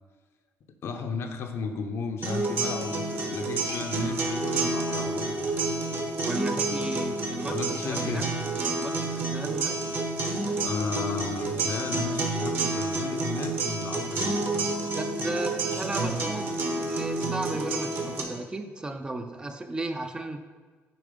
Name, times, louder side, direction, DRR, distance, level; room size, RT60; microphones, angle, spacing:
voice 1, 0.8-5.5 6.8-6.9 7.5-8.3 10.6-14.8, left 5 dB, 65° left, 5 dB, 0.8 m, -34 dB
sound 1, 2.2-18.2, right 3 dB, 50° right, 1.2 m, -29 dB
voice 2, 6.2-8.3 8.8-9.8 14.9-20.4, right 2 dB, 20° right, 7 dB, 0.5 m, -35 dB
7.0 x 4.5 x 5.0 m, 1.4 s
cardioid pair, 110°, 5 cm